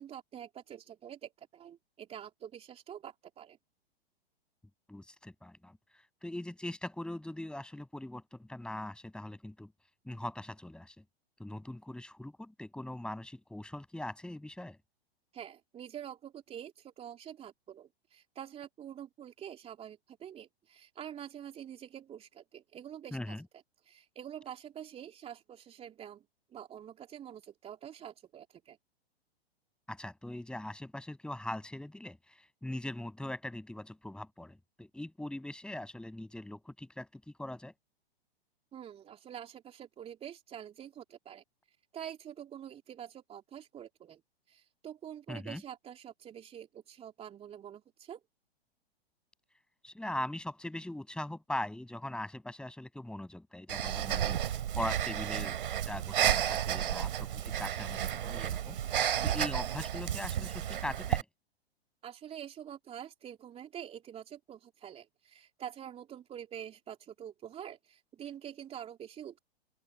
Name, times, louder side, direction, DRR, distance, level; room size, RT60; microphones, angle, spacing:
voice 1, 0.0-3.6 15.3-23.4 23.8-26.2 26.5-28.8 38.7-44.2 44.5-48.2 62.0-69.4, right 9 dB, 20° right, 3.4 m, -46 dB
voice 2, 4.9-5.8 6.2-9.7 10.0-11.0 11.4-14.8 23.1-23.4 29.9-37.7 45.3-45.6 49.8-55.6 55.9-58.8 59.2-61.3, left 1 dB, 5° left, 7.1 m, -41 dB
Breathing, 53.7-61.2, right 10 dB, 55° right, 3.2 m, -32 dB
open air
figure-of-eight pair, 105°, 31 cm